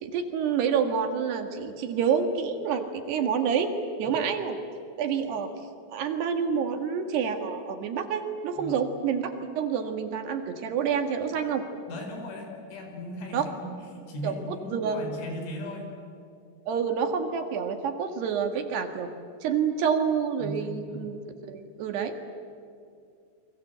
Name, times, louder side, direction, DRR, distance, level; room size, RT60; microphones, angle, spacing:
voice 1, 0.0-3.7 4.0-4.6 5.0-5.5 5.9-11.6 13.3-13.5 14.2-15.0 16.7-19.1 19.4-21.2 21.4-22.2, right 7 dB, 65° right, 6 dB, 3.6 m, -28 dB
voice 2, 11.9-15.9 20.4-21.0, equal, 80° left, 3 dB, 7.0 m, -38 dB
29.5 x 23.0 x 8.1 m, 2.5 s
omnidirectional pair, 5.4 m